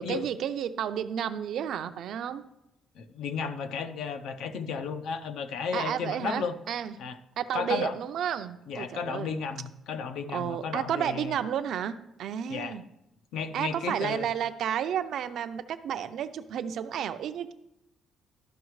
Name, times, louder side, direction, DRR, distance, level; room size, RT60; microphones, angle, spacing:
voice 1, 0.0-2.4 5.7-6.9 7.4-9.4 10.3-12.8 13.5-17.5, right 9 dB, 60° right, 10 dB, 0.5 m, -32 dB
voice 2, 2.9-6.5 7.0-7.2 7.5-7.9 8.7-11.4 12.5-12.8 13.3-14.3, left 5 dB, 65° left, 9 dB, 0.6 m, -33 dB
12.5 x 5.7 x 3.1 m, 0.86 s
cardioid pair, 170°, 0 cm